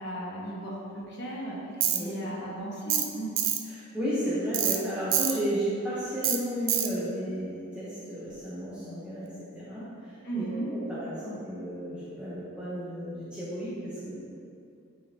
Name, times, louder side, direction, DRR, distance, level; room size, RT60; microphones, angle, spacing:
voice 1, 0.0-3.3 10.2-10.7, right 1 dB, 50° left, -6 dB, 1.4 m, -36 dB
Tools, 1.8-2.0 2.9-3.1 3.4-3.6 4.5-4.8 5.1-5.3 6.2-6.4 6.7-6.9, right 9 dB, 60° right, 0.4 m, -25 dB
voice 2, 3.7-9.3 9.5-10.5 10.9-14.2, equal, 5° right, -11 dB, 0.8 m, -33 dB
9.0 x 3.8 x 2.8 m, 2.5 s
head